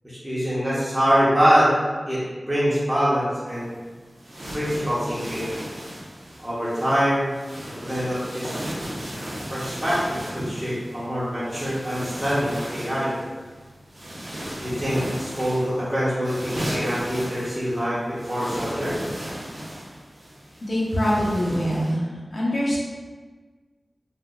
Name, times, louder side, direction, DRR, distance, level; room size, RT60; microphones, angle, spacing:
voice 1, 0.0-1.7 2.1-3.7 4.5-5.5 6.4-7.3 7.7-8.6 9.5-13.1 14.6-18.9, equal, 10° right, -10 dB, 0.8 m, -24 dB
sound 1, 3.5-21.9, equal, 60° right, 1.0 m, -36 dB
voice 2, 20.6-22.0 22.3-22.8, equal, 55° left, -5 dB, 0.9 m, -23 dB
3.7 x 2.5 x 2.4 m, 1.4 s
wide cardioid pair, 65°, 0 cm